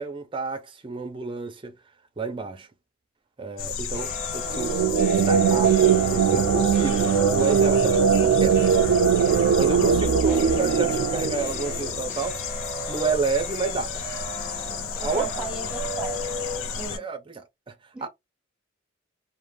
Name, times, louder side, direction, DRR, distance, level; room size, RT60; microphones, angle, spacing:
voice 1, 0.0-1.7 2.2-2.7 3.4-4.8 5.3-12.4 12.9-13.9 15.0-15.3 16.9-17.7 18.0-18.1, right 4 dB, 25° right, 0.5 m, -30 dB
sound 1, 3.6-17.0, left 6 dB, 75° left, 0.4 m, -32 dB
sound 2, 3.9-16.9, right 2 dB, 45° left, 1.2 m, -35 dB
sound 3, 4.5-11.9, right 7 dB, 85° right, 0.3 m, -21 dB
voice 2, 15.0-16.2 16.8-17.0 17.9-18.1, right 3 dB, 5° right, 0.8 m, -36 dB
2.4 x 2.0 x 3.2 m
head